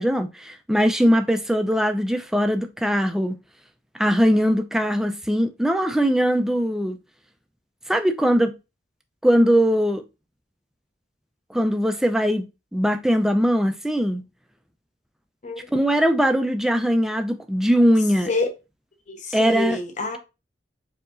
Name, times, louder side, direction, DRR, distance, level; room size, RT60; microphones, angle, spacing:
voice 1, 0.0-3.4 4.0-7.0 7.9-8.5 9.2-10.0 11.5-14.2 15.7-18.3 19.3-19.8, equal, 5° right, 0.4 m, -21 dB
voice 2, 19.1-20.2, left 3 dB, 45° left, 0.9 m, -27 dB
4.6 x 2.9 x 2.5 m
head